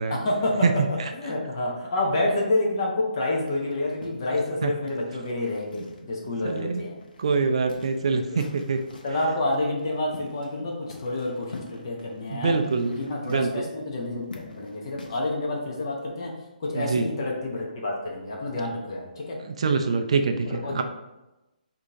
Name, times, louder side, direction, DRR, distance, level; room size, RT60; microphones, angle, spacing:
voice 1, 0.1-6.9 8.3-8.4 9.0-12.6 12.8-16.3 16.6-19.4 20.4-20.8, left 2 dB, 35° left, -2 dB, 0.8 m, -28 dB
sound 1, 3.4-6.3 6.6-6.7 7.0-9.3 9.8-10.6 10.9-15.3, left 2 dB, 90° left, 0.9 m, -46 dB
voice 2, 6.4-6.8 7.2-8.8 12.3-13.5 16.7-17.1 19.4-20.8, right 4 dB, 40° right, 6 dB, 0.4 m, -25 dB
4.9 x 2.8 x 3.6 m, 0.99 s
hypercardioid pair, 175°, 5 cm